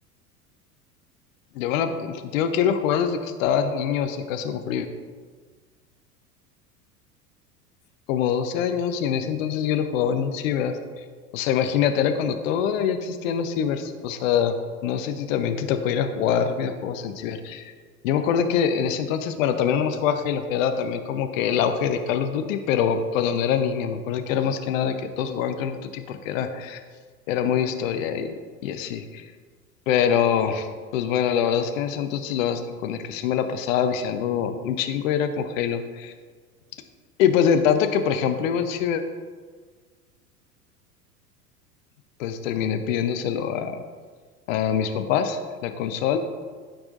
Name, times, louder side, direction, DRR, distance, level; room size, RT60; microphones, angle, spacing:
voice 1, 1.5-4.9 8.1-11.0 11.3-14.6 14.8-17.7 18.0-26.8 27.3-28.3 28.6-29.3 29.9-30.7 30.9-36.1 37.2-39.0 42.2-43.8 44.5-46.2, left 8 dB, 55° left, 8 dB, 0.8 m, -24 dB
13.0 x 4.8 x 2.5 m, 1.5 s
figure-of-eight pair, 80°, 47 cm